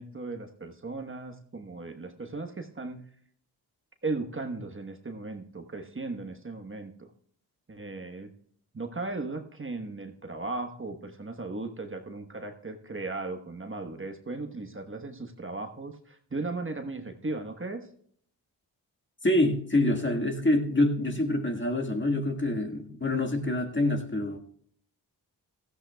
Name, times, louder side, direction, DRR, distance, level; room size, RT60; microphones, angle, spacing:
voice 1, 0.0-3.0 4.0-7.1 7.7-8.3 8.7-17.9, right 3 dB, 30° right, 1.2 m, -37 dB
voice 2, 19.2-24.4, left 1 dB, 25° left, 1.7 m, -26 dB
16.5 x 13.5 x 2.3 m
cardioid pair, 55°, 42 cm